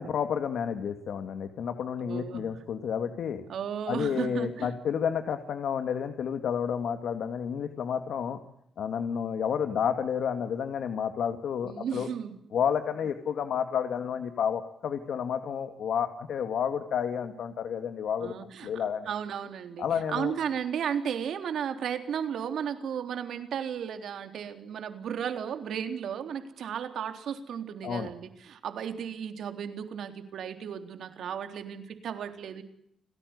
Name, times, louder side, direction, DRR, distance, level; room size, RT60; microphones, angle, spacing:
voice 1, 0.0-3.4 3.9-8.4 8.8-12.1 12.5-19.1 19.8-20.3 27.8-28.1, left 7 dB, 65° left, 7 dB, 2.4 m, -30 dB
voice 2, 2.0-2.5 3.5-4.7 11.6-12.5 18.2-18.7 19.1-32.6, right 8 dB, 70° right, 7 dB, 3.6 m, -34 dB
29.5 x 19.0 x 9.7 m, 0.75 s
wide cardioid pair, 155°, 0 cm